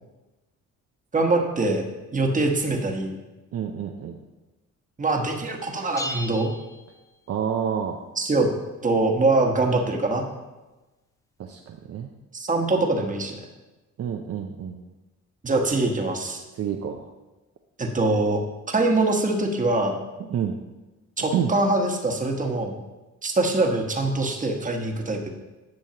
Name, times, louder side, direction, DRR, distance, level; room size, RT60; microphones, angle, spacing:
voice 1, 1.1-1.8 2.1-3.2 5.0-6.5 8.2-8.5 8.8-10.2 12.3-13.4 15.4-16.4 17.8-18.4 18.7-20.0 21.2-22.8 23.2-25.3, right 2 dB, 25° right, 2 dB, 1.2 m, -23 dB
voice 2, 3.5-4.2 7.3-8.0 11.4-12.1 14.0-14.8 16.6-17.1 20.2-20.6 21.3-21.5, right 8 dB, 55° right, 3 dB, 0.6 m, -28 dB
sound 1, 6.0-7.5, left 1 dB, 10° left, 0.6 m, -36 dB
10.5 x 6.3 x 2.9 m, 1.1 s
cardioid pair, 90°, 30 cm